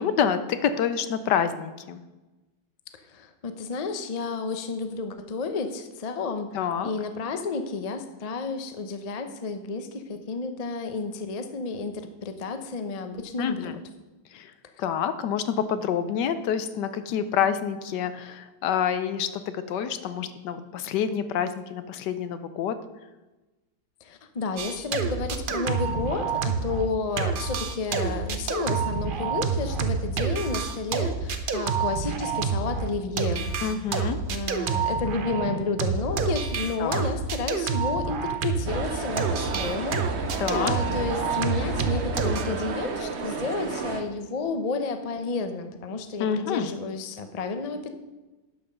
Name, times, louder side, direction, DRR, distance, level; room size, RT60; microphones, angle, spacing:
voice 1, 0.0-2.0 6.5-6.9 13.4-13.8 14.3-14.5 14.8-22.7 33.6-34.2 36.8-37.1 40.4-40.8 46.2-46.7, left 8 dB, 70° left, 11 dB, 1.3 m, -27 dB
voice 2, 3.1-6.5 6.8-13.7 24.0-33.5 34.3-40.0 40.3-47.9, left 4 dB, 55° left, 8 dB, 0.4 m, -31 dB
sound 1, 24.6-26.9 27.2-38.9 39.2-42.4, right 5 dB, 80° right, 0.4 m, -28 dB
sound 2, 38.7-44.0, right 5 dB, 50° right, 0.9 m, -32 dB
11.5 x 5.7 x 6.5 m, 1.1 s
omnidirectional pair, 2.0 m